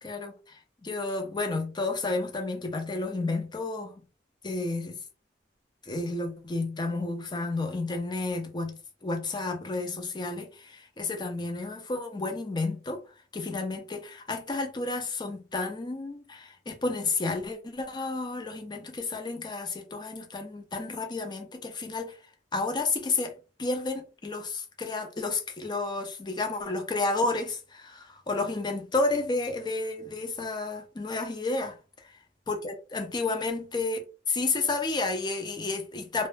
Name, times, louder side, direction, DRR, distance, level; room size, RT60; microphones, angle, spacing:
voice 1, 0.0-4.0 4.4-5.0 5.8-13.0 13.3-22.2 22.5-31.7 32.5-36.3, left 3 dB, 25° left, 0.5 m, -31 dB
2.1 x 2.0 x 3.2 m
head